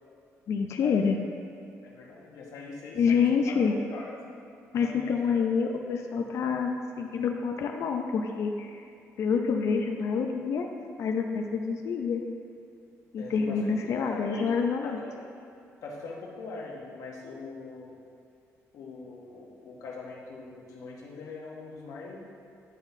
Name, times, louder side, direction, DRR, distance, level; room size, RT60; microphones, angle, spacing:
voice 1, 0.5-1.2 2.9-3.7 4.7-6.7 7.0-8.9 9.2-10.7 11.0-12.2 13.1-15.0, left 6 dB, 60° left, 3 dB, 0.4 m, -27 dB
voice 2, 1.8-4.1 4.8-5.4 13.2-15.1 15.8-17.9 18.7-22.2, left 3 dB, 80° left, -2 dB, 1.0 m, -42 dB
9.8 x 4.1 x 2.6 m, 2.6 s
cardioid pair, 115°, 6 cm